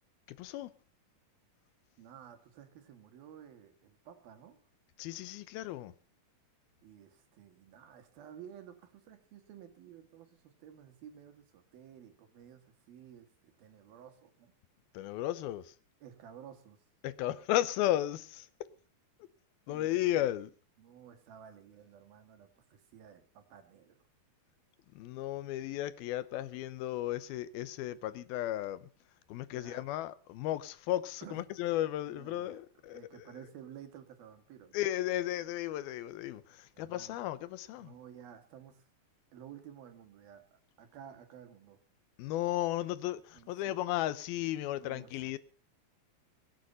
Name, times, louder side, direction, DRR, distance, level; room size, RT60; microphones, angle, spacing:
voice 1, 0.3-0.7 5.0-5.9 14.9-15.7 17.0-18.7 19.7-20.5 25.0-28.9 29.3-33.2 34.7-37.9 42.2-45.4, left 14 dB, 85° left, 2.8 m, -34 dB
voice 2, 2.0-4.6 6.8-14.5 16.0-16.9 19.7-19.9 20.1-20.3 20.8-24.0 29.5-29.9 31.2-31.5 32.1-32.6 32.9-34.7 36.7-37.2 37.8-38.9 39.3-41.8 43.3-43.8 44.8-45.3, right 9 dB, 80° right, 3.8 m, -53 dB
22.0 x 9.2 x 5.6 m
omnidirectional pair, 4.2 m